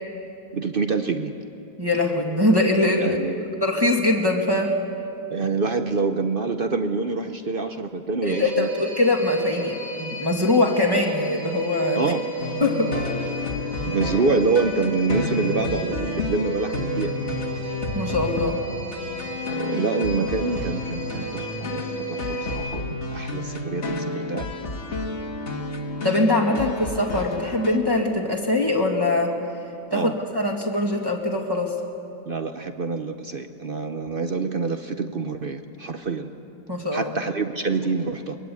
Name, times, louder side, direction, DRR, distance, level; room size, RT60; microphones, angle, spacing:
voice 1, 0.5-1.4 3.0-3.4 5.3-8.7 12.0-12.3 13.8-17.1 19.5-24.5 26.5-26.6 29.9-30.2 32.3-36.3 36.9-38.4, right 4 dB, 60° right, 8 dB, 0.5 m, -26 dB
voice 2, 1.8-3.2 3.6-4.8 8.2-12.0 12.6-12.9 17.9-18.6 26.0-29.4 29.9-31.7 36.7-37.1, left 2 dB, 10° right, 0 dB, 1.9 m, -22 dB
sound 1, 8.3-22.6, right 3 dB, 75° right, 4.7 m, -34 dB
sound 2, 12.4-27.8, left 3 dB, 40° left, 1.7 m, -31 dB
23.0 x 21.5 x 8.5 m, 2.9 s
omnidirectional pair, 2.0 m